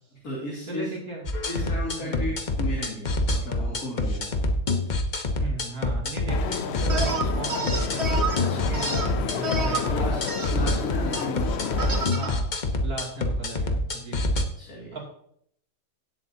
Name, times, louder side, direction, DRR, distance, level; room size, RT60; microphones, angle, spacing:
voice 1, 0.1-0.9 1.5-4.3 8.4-8.7 9.9-10.2 10.5-12.2 14.6-15.0, left 1 dB, 75° left, -4 dB, 2.9 m, -35 dB
voice 2, 0.7-1.3 2.0-2.3 5.4-8.1 8.5-10.2 12.1-12.5 12.8-14.2 14.9-15.0, right 3 dB, 75° right, -1 dB, 3.1 m, -36 dB
sound 1, 1.3-14.4, left 1 dB, 35° left, 1.0 m, -26 dB
sound 2, 6.3-12.1, left 9 dB, 60° left, 0.7 m, -31 dB
sound 3, 6.9-8.4 8.7-9.8 10.3-10.5 11.1-11.2 11.8-12.3, right 3 dB, 50° right, 1.8 m, -29 dB
17.0 x 8.0 x 2.8 m, 0.68 s
omnidirectional pair, 1.5 m